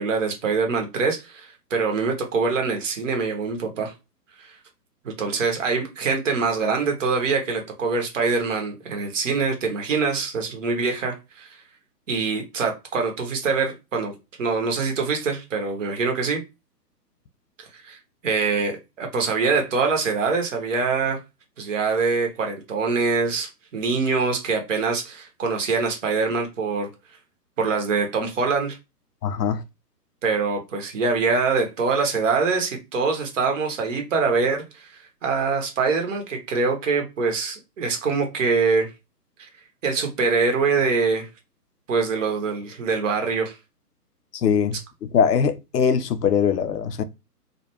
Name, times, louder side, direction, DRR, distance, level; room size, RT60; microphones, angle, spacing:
voice 1, 0.0-3.9 4.4-4.6 5.0-11.6 12.1-14.1 14.4-16.4 17.6-21.2 21.6-26.9 27.6-28.8 30.2-34.9 35.2-38.9 39.8-41.3 41.9-43.6, right 4 dB, 50° right, 0.8 m, -24 dB
voice 2, 29.2-29.6 44.3-47.0, left 7 dB, 75° left, 0.6 m, -22 dB
2.5 x 2.2 x 2.8 m
figure-of-eight pair, 130°, 49 cm